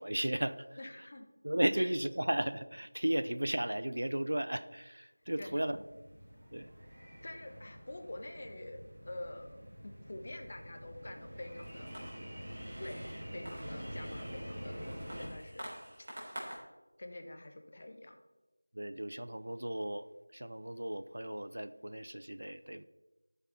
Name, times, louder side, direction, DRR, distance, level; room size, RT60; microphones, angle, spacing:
voice 1, 0.0-0.8 1.4-5.8 6.5-6.7 18.7-22.8, right 1 dB, 65° right, 13 dB, 0.6 m, -35 dB
voice 2, 0.8-1.3 1.8-1.9 5.4-5.8 7.2-11.9 12.8-13.0 13.3-16.1 17.0-18.2, left 1 dB, 30° left, 6 dB, 1.0 m, -47 dB
sound 1, 5.2-15.2, equal, 15° right, 4.2 m, -46 dB
sound 2, 11.6-16.6, equal, 35° right, 3.7 m, -49 dB
13.0 x 7.0 x 4.2 m, 1.1 s
figure-of-eight pair, 175°, 0 cm